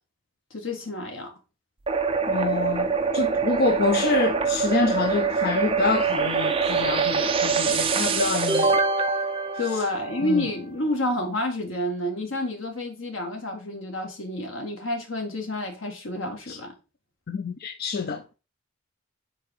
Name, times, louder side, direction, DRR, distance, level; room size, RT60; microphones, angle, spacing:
voice 1, 0.5-1.3 9.6-16.7, left 1 dB, 75° left, 1.7 m, -29 dB
sound 1, 1.9-10.5, right 5 dB, 25° right, 0.6 m, -24 dB
voice 2, 2.3-8.8 9.7-9.8 10.2-10.5 16.5-16.6 17.3-18.2, left 4 dB, 50° left, 0.5 m, -27 dB
4.9 x 4.3 x 4.6 m
head